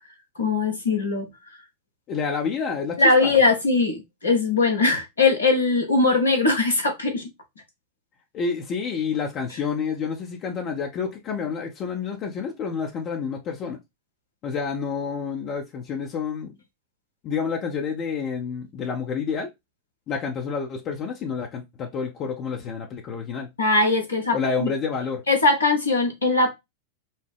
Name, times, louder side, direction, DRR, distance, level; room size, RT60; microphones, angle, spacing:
voice 1, 0.4-1.3 3.0-7.3 23.6-24.7 25.3-26.5, left 3 dB, 80° left, 1.3 m, -20 dB
voice 2, 2.1-3.4 8.3-13.8 14.4-16.5 17.2-19.5 20.1-23.5 24.3-25.2, left 6 dB, 35° left, 0.8 m, -29 dB
5.5 x 2.1 x 3.4 m
figure-of-eight pair, 90°, 0 cm